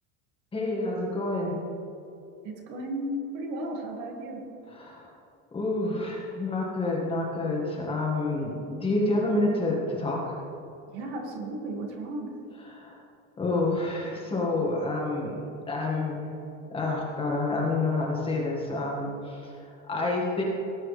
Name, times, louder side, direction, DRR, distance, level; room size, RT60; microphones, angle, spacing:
voice 1, 0.5-1.6 4.7-5.1 5.5-10.4 12.7-13.0 13.4-15.4 15.7-16.3 16.7-20.4, left 2 dB, 15° left, -3 dB, 1.8 m, -28 dB
voice 2, 2.4-4.5 10.9-12.3, right 1 dB, 60° right, 1 dB, 2.2 m, -34 dB
18.5 x 8.6 x 3.3 m, 2.7 s
cardioid pair, 165°, 36 cm